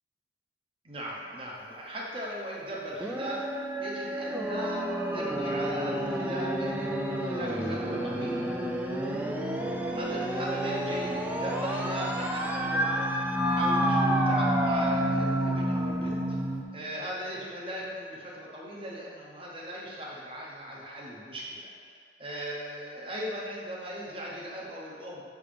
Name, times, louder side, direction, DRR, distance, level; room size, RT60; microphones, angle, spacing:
voice 1, 0.8-8.5 9.9-13.2 13.5-16.4 16.7-21.7 22.2-25.2, equal, 30° right, -4 dB, 0.8 m, -38 dB
sound 1, 3.0-16.6, right 1 dB, 10° right, 0.3 m, -29 dB
6.8 x 3.5 x 5.0 m, 2.3 s
head